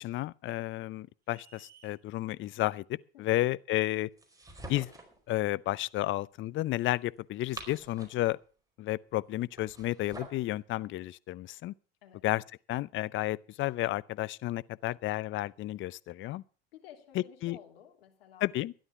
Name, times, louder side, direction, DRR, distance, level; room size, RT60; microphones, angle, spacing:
voice 1, 0.0-4.1 4.7-4.9 5.3-8.4 8.8-11.7 12.2-16.4 17.1-17.6 18.4-18.7, left 16 dB, 40° left, 0.6 m, -32 dB
sound 1, 1.3-2.0, right 7 dB, 30° right, 2.5 m, -58 dB
voice 2, 3.1-3.5 12.0-12.4 16.7-18.5, left 10 dB, 80° left, 3.0 m, -54 dB
sound 2, 4.2-5.2 7.2-8.3 9.6-10.5, right 2 dB, 10° right, 4.7 m, -46 dB
13.0 x 11.0 x 5.8 m
hypercardioid pair, 85°, 29 cm